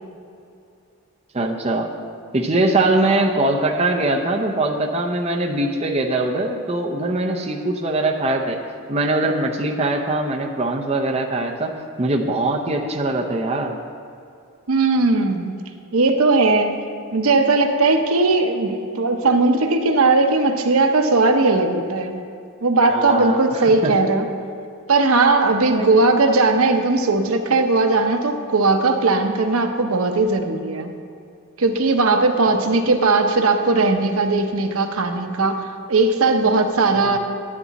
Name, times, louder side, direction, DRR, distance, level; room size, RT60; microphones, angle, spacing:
voice 1, 1.3-1.9 2.3-8.6 8.9-11.7 12.0-13.8 22.9-23.9 25.6-25.9 37.1-37.2, right 2 dB, 30° right, 1 dB, 0.6 m, -22 dB
voice 2, 14.7-15.5 15.9-16.8 17.1-22.2 22.6-24.3 24.9-30.9 31.6-37.2, right 3 dB, 75° right, 6 dB, 0.8 m, -18 dB
11.0 x 9.7 x 4.1 m, 2.5 s
head